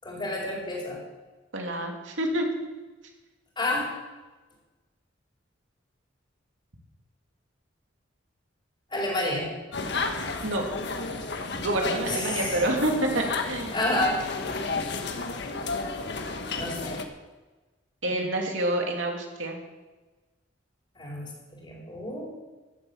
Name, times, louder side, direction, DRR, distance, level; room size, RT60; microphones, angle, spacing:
voice 1, 0.0-1.0 3.6-3.9 8.9-9.5 12.0-12.6 13.7-14.5 16.6-17.0 20.9-21.3 21.6-22.3, left 1 dB, 25° left, -3 dB, 4.5 m, -29 dB
voice 2, 1.5-2.5 10.4-10.7 11.6-13.7 18.0-19.6, right 1 dB, 75° right, 1 dB, 2.8 m, -28 dB
sound 1, 9.7-17.0, left 3 dB, 65° left, 1.4 m, -32 dB
14.5 x 8.7 x 7.3 m, 1.2 s
head